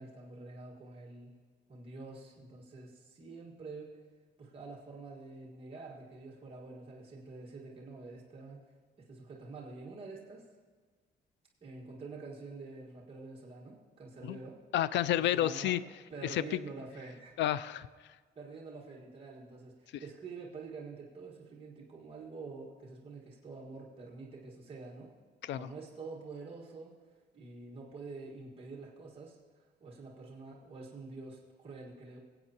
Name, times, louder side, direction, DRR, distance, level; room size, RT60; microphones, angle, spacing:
voice 1, 0.0-1.3 1.7-4.0 4.4-8.6 9.0-10.5 11.6-14.6 15.3-15.8 16.1-17.4 18.4-25.1 25.5-27.0 27.3-29.4 29.8-32.2, right 3 dB, 30° right, -5 dB, 1.7 m, -47 dB
voice 2, 14.7-15.8 16.2-16.6 17.4-17.9 19.9-20.0 25.4-25.7, left 12 dB, 85° left, 16 dB, 0.4 m, -30 dB
22.0 x 8.1 x 2.9 m, 1.5 s
cardioid pair, 150°, 18 cm